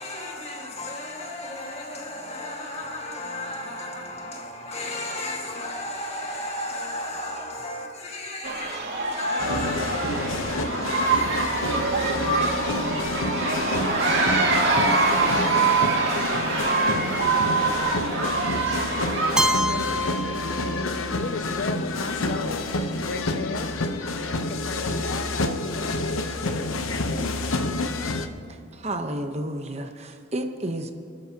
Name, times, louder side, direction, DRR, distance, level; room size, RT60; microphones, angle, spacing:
voice 1, 0.0-17.3, left 1 dB, 30° left, 1.9 m, -35 dB
sound 1, 8.4-19.4, right 3 dB, 60° right, 2.2 m, -24 dB
sound 2, 9.4-28.3, left 2 dB, 85° left, 0.9 m, -28 dB
Keyboard (musical), 19.4-21.3, equal, 5° right, 0.3 m, -27 dB
voice 2, 19.7-22.6 23.0-23.7 24.3-26.4, left 4 dB, 55° left, 0.5 m, -35 dB
voice 3, 28.5-30.9, right 1 dB, 30° right, 0.9 m, -31 dB
28.5 x 12.5 x 2.9 m
head